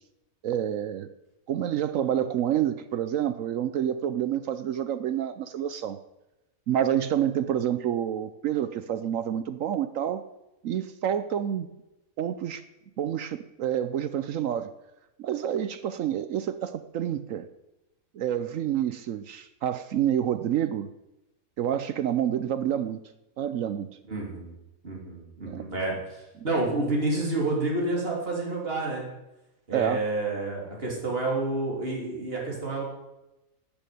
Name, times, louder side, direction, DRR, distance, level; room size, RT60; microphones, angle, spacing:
voice 1, 0.4-1.1 1.5-6.0 6.7-10.2 10.6-11.7 12.2-12.6 13.0-14.7 15.2-17.5 18.1-20.9 21.6-23.0 23.4-23.9 25.5-25.7 29.7-30.1, right 10 dB, 70° right, 12 dB, 1.0 m, -28 dB
voice 2, 24.1-24.5 24.8-29.0 29.7-32.8, right 2 dB, 40° right, -2 dB, 3.5 m, -29 dB
12.0 x 7.1 x 9.2 m, 0.96 s
omnidirectional pair, 1.5 m